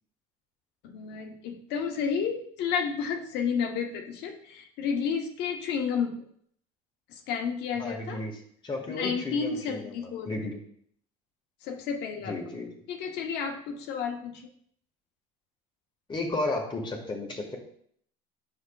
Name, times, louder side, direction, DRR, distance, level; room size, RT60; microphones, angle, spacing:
voice 1, 0.8-6.2 7.3-8.2 8.9-10.5 11.6-12.5 12.9-14.4, left 6 dB, 60° left, 3 dB, 1.1 m, -31 dB
voice 2, 7.8-8.4 8.6-10.6 12.3-12.7 16.1-17.6, left 2 dB, 25° left, 0 dB, 1.6 m, -33 dB
8.0 x 6.6 x 2.4 m, 0.64 s
supercardioid pair, 90°, 19 cm